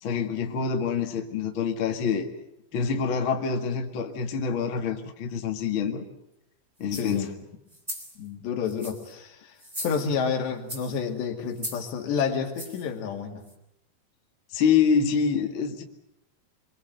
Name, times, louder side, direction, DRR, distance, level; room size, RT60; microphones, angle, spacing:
voice 1, 0.0-2.3 2.7-6.0 6.8-7.3 14.5-15.8, left 6 dB, 50° left, 3 dB, 1.5 m, -26 dB
sound 1, 6.8-7.2 7.7-8.2 8.6-9.1 9.6-10.3 10.7-11.0 11.5-11.9 12.5-12.9 13.5-13.6, equal, 10° right, 2.7 m, -38 dB
voice 2, 6.9-7.3 8.2-9.6 9.8-13.4, left 6 dB, 70° left, 3 dB, 4.4 m, -29 dB
25.5 x 24.0 x 8.0 m, 0.81 s
omnidirectional pair, 5.4 m